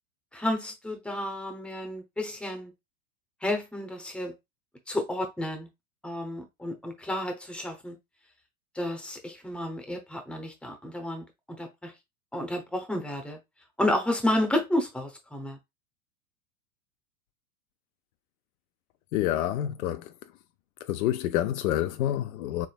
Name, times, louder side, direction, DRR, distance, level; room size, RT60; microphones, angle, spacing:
voice 1, 0.3-2.7 3.4-4.3 4.9-5.7 6.0-8.0 8.7-11.9 12.3-13.4 13.8-15.6, left 1 dB, ahead, 0.7 m, -31 dB
voice 2, 19.1-20.1 20.8-22.7, left 12 dB, 60° left, 0.5 m, -28 dB
3.8 x 3.5 x 2.3 m
hypercardioid pair, 105°, 47 cm